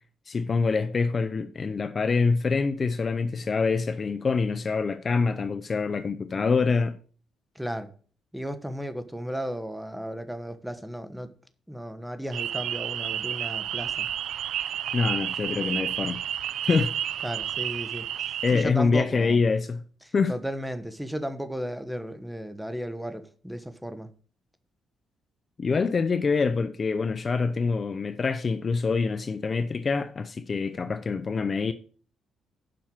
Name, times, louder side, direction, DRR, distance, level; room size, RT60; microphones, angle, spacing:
voice 1, 0.3-7.0 14.9-16.2 16.6-16.9 18.4-19.8 20.1-20.3 25.6-31.7, left 4 dB, 40° left, 0.6 m, -25 dB
voice 2, 7.5-7.9 8.3-11.3 11.7-14.1 17.2-19.4 20.1-24.1, equal, 5° right, 1.2 m, -34 dB
sound 1, 12.3-18.6, right 10 dB, 75° right, 0.4 m, -31 dB
7.6 x 5.7 x 7.3 m
cardioid pair, 90°, 0 cm